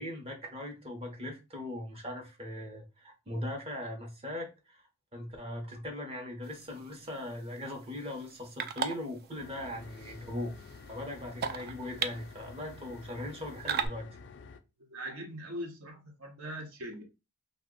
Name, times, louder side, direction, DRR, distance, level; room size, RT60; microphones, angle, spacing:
voice 1, 0.0-4.8 5.1-10.5 10.9-14.1, left 1 dB, 25° right, 0.7 m, -40 dB
sound 1, 6.4-13.9, right 7 dB, 45° right, 0.3 m, -40 dB
sound 2, 9.4-14.6, left 5 dB, 55° left, 0.3 m, -50 dB
voice 2, 14.9-17.0, equal, 70° right, 0.8 m, -41 dB
2.8 x 2.1 x 3.6 m
head